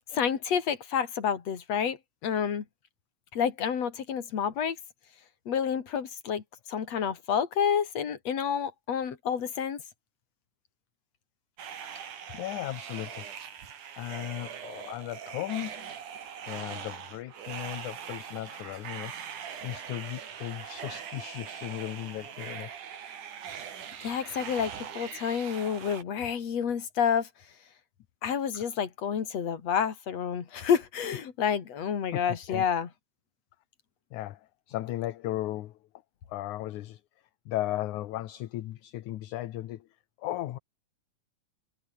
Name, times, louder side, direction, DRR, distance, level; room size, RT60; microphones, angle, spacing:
voice 1, 0.1-2.0 2.2-2.6 3.3-4.8 5.5-6.4 6.7-9.8 24.0-27.3 28.2-32.9, left 7 dB, 55° left, 3.6 m, -29 dB
sound 1, 11.6-26.0, right 8 dB, 70° right, 4.0 m, -41 dB
voice 2, 11.9-13.3 13.5-15.9 16.5-22.7 32.1-32.6 34.1-35.8 36.3-37.0 37.5-39.9 40.2-40.6, left 14 dB, 70° left, 2.4 m, -36 dB
omnidirectional pair, 3.7 m